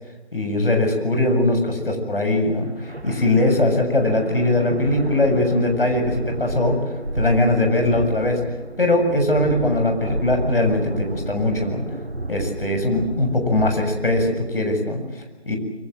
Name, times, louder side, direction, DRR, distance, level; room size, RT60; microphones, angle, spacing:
voice 1, 0.3-6.8 7.1-8.4 8.8-11.8 12.3-15.6, left 2 dB, 60° left, 4 dB, 7.3 m, -21 dB
sound 1, 2.6-14.8, right 1 dB, 90° right, 2.6 m, -31 dB
25.5 x 24.5 x 7.7 m, 1.1 s
figure-of-eight pair, 160°, 32 cm